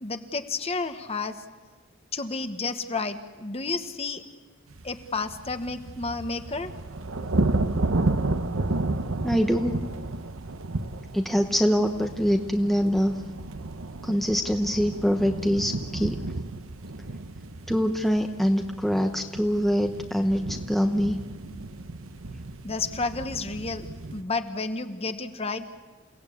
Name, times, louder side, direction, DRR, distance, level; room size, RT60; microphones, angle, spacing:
voice 1, 0.0-1.3 2.1-4.2 4.8-6.7 22.6-25.6, left 3 dB, 30° left, 8 dB, 1.2 m, -31 dB
sound 1, 4.7-24.2, right 2 dB, 70° right, 1.0 m, -32 dB
voice 2, 9.2-9.7 11.1-13.1 14.0-16.2 17.7-21.2, equal, ahead, 4 dB, 0.9 m, -24 dB
28.5 x 18.0 x 8.6 m, 1.2 s
head